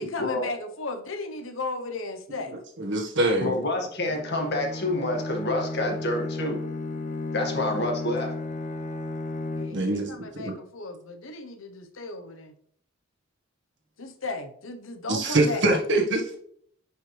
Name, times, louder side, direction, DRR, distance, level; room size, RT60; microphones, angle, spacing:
voice 1, 0.0-2.6 7.4-7.7 9.5-12.5 14.0-15.6, left 3 dB, 80° left, 7 dB, 1.0 m, -35 dB
voice 2, 2.5-3.5 9.7-10.5 15.1-16.4, right 2 dB, 60° right, 1 dB, 1.6 m, -24 dB
voice 3, 3.4-6.6 7.3-8.3, left 1 dB, 55° left, 2 dB, 1.9 m, -28 dB
Bowed string instrument, 4.1-10.1, left 2 dB, 40° left, 0.7 m, -34 dB
10.0 x 5.6 x 3.3 m, 0.65 s
head